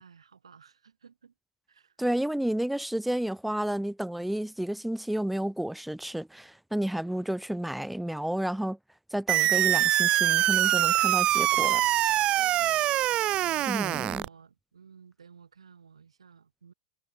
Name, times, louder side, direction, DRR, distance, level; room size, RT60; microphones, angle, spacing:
voice 1, 0.0-1.3 1.7-2.0 12.3-13.8 14.1-16.7, right 6 dB, 75° right, 6.3 m, -54 dB
voice 2, 2.0-8.8 9.1-11.8 13.7-14.2, right 1 dB, ahead, 1.2 m, -31 dB
sound 1, 9.3-14.3, right 14 dB, 35° right, 0.4 m, -24 dB
figure-of-eight pair, 95°, 3 cm